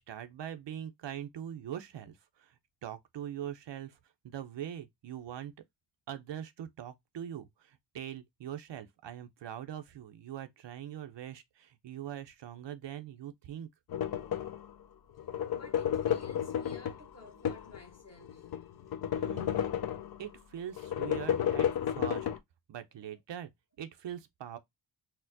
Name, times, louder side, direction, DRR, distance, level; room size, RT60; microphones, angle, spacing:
voice 1, 0.0-4.0 4.2-5.5 6.1-13.7 19.1-19.6 20.2-22.3 22.7-23.5 23.8-24.6, right 10 dB, 65° right, 0.6 m, -42 dB
sound 1, 13.9-14.7 15.2-17.8 18.3-20.2 20.8-22.4, left 9 dB, 55° left, 0.5 m, -32 dB
voice 2, 15.5-18.5, left 2 dB, 35° left, 1.0 m, -53 dB
4.2 x 2.0 x 2.6 m
wide cardioid pair, 105°, 47 cm